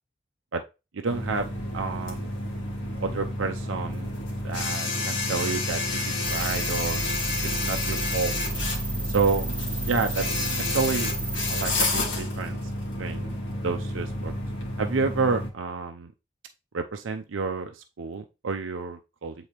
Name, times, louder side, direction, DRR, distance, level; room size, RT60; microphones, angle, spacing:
voice 1, 0.9-1.5 1.7-2.3 3.0-4.2 4.4-7.0 7.4-8.3 9.0-9.5 9.8-11.1 11.5-12.6 13.0-13.3 13.6-14.3 14.8-16.1 16.7-19.3, right 4 dB, 80° right, 5 dB, 0.5 m, -29 dB
sound 1, 1.1-15.5, left 2 dB, 75° left, 1.7 m, -30 dB
sound 2, 6.2-12.0, right 2 dB, 30° left, 3.6 m, -33 dB
8.3 x 3.9 x 3.0 m, 0.28 s
head